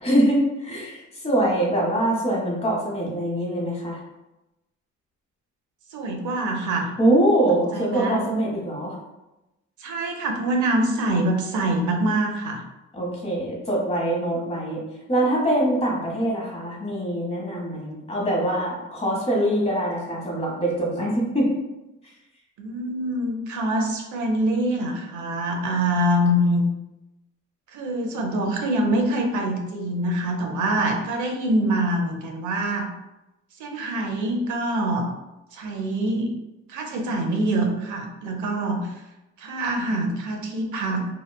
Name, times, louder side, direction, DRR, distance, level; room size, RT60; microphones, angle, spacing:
voice 1, 0.0-4.0 7.0-8.9 12.9-14.8 15.1-21.5, right 1 dB, 20° left, -3 dB, 1.0 m, -23 dB
voice 2, 5.9-6.9 7.7-8.2 9.8-12.6 22.6-26.7 27.7-32.9 33.6-35.1 35.5-36.3 36.7-39.0 39.4-41.1, right 1 dB, 75° right, 2 dB, 0.6 m, -25 dB
2.9 x 2.2 x 2.2 m, 0.97 s
cardioid pair, 90°, 30 cm